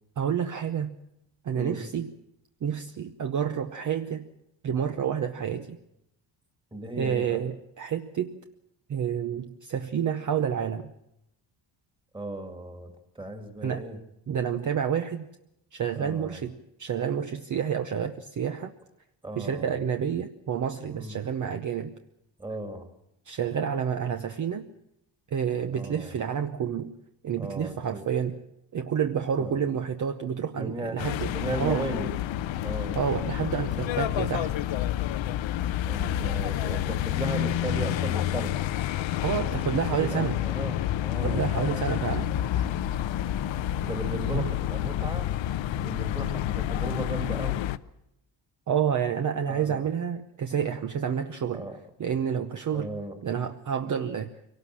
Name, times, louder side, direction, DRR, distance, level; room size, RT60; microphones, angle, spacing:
voice 1, 0.2-1.0 1.4-2.1 2.6-4.3 4.6-5.8 7.0-8.4 8.9-10.9 13.6-13.8 14.3-15.3 15.7-18.7 19.4-21.9 23.3-24.7 25.3-26.9 27.2-28.4 28.7-31.3 31.6-31.9 32.9-34.5 39.2-40.4 41.2-42.3 44.3-44.5 48.7-51.6 52.0-52.9 53.2-54.3, right 8 dB, 40° right, 7 dB, 0.8 m, -29 dB
voice 2, 6.7-7.4 12.1-14.0 16.0-16.4 19.2-19.8 20.9-21.2 22.4-22.9 25.7-26.2 27.4-28.1 29.4-29.5 30.6-32.1 32.6-33.1 35.9-38.6 39.9-41.9 42.5-42.8 43.8-45.3 45.8-47.6 49.5-49.9 51.5-51.8 52.7-53.2, right 2 dB, 10° right, 5 dB, 2.1 m, -36 dB
sound 1, 31.0-47.8, left 12 dB, 70° left, 0.8 m, -29 dB
24.0 x 18.0 x 7.5 m, 0.82 s
wide cardioid pair, 175°, 47 cm